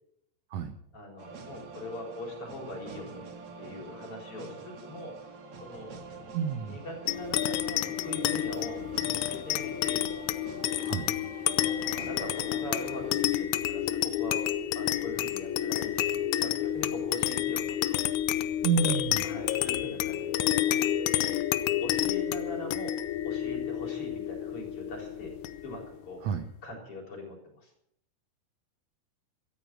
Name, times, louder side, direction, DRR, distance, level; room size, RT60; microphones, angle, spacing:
voice 1, 0.9-3.2 3.6-6.0 6.6-10.1 11.6-14.5 14.7-18.0 19.2-20.9 21.8-23.0 23.2-25.3 25.6-26.3 26.6-27.7, left 1 dB, 40° left, 1 dB, 4.8 m, -42 dB
sound 1, 1.2-13.1, right 4 dB, 50° right, 2.3 m, -46 dB
voice 2, 6.3-6.8 10.9-11.1 18.6-19.2 26.2-26.5, right 6 dB, 80° right, 9 dB, 1.5 m, -29 dB
sound 2, 7.1-25.9, left 12 dB, 85° left, 1.6 m, -30 dB
13.5 x 13.0 x 6.2 m, 0.73 s
omnidirectional pair, 4.2 m